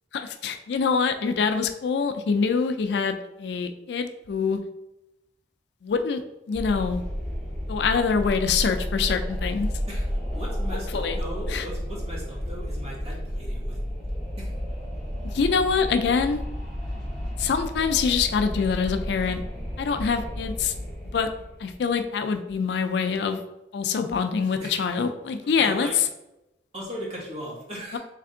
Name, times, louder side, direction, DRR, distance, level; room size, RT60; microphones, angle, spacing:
voice 1, 0.1-4.6 5.8-6.2 6.5-7.0 7.7-9.7 10.9-11.2 11.5-11.7 15.3-16.4 17.4-19.4 19.8-20.7 21.1-21.3 21.6-23.4 23.7-25.9 27.9-28.0, left 5 dB, 65° left, 7 dB, 0.4 m, -25 dB
Wind, 6.5-21.9, equal, ahead, 1.4 m, -32 dB
voice 2, 9.9-13.8 14.4-14.5 24.6-24.8 25.4-26.0 26.7-28.0, equal, 35° right, -5 dB, 1.4 m, -38 dB
3.4 x 3.3 x 3.7 m, 0.91 s
head